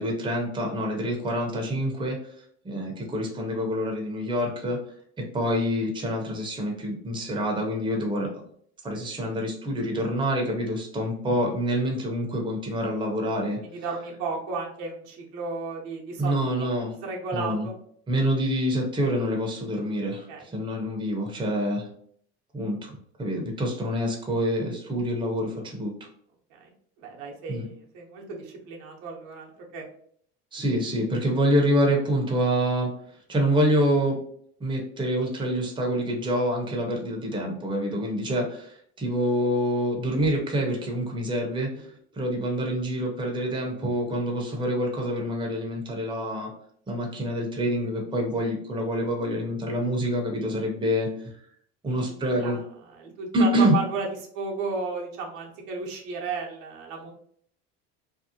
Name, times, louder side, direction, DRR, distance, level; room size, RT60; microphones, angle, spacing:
voice 1, 0.0-2.2 2.6-4.8 5.3-8.3 8.8-13.6 16.2-16.9 17.3-17.7 18.1-21.9 22.5-25.9 27.5-27.7 30.5-32.9 33.3-34.2 34.6-46.5 46.9-51.3 51.8-52.6 53.3-53.8, equal, 15° right, 0 dB, 0.7 m, -26 dB
voice 2, 13.6-16.7 17.0-17.7 20.3-20.5 26.5-26.7 27.0-29.8 51.9-52.6 52.9-54.1 54.3-57.1, right 4 dB, 70° right, 0 dB, 0.8 m, -34 dB
2.6 x 2.0 x 2.7 m, 0.63 s
supercardioid pair, 95°, 32 cm